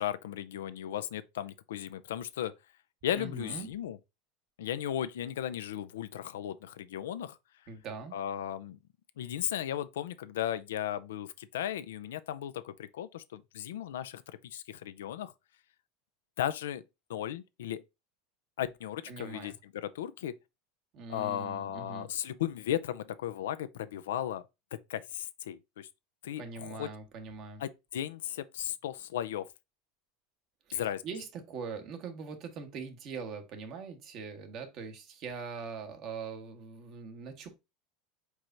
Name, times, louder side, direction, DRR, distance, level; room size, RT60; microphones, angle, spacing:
voice 1, 0.0-2.5 3.0-4.0 4.6-7.4 8.1-8.8 9.2-15.3 16.4-16.8 17.1-17.8 18.6-20.3 21.1-24.4 24.7-25.9 26.2-26.9 27.6-29.5 30.7-31.0, left 11 dB, 85° left, 0.4 m, -36 dB
voice 2, 3.1-3.7 7.7-8.1 19.1-19.6 20.9-22.1 26.4-27.6 30.7-37.6, right 5 dB, 50° right, 1.3 m, -42 dB
4.7 x 4.3 x 2.6 m
supercardioid pair, 105°, 0 cm